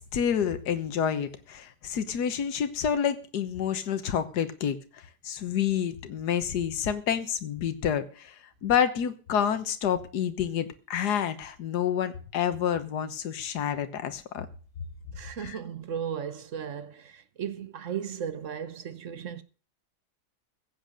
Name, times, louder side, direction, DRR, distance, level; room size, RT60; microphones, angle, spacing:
voice 1, 0.0-14.5 15.4-15.6, left 8 dB, 80° left, 1.6 m, -29 dB
voice 2, 15.2-19.4, right 8 dB, 55° right, 1.2 m, -36 dB
15.5 x 7.9 x 6.5 m
omnidirectional pair, 1.7 m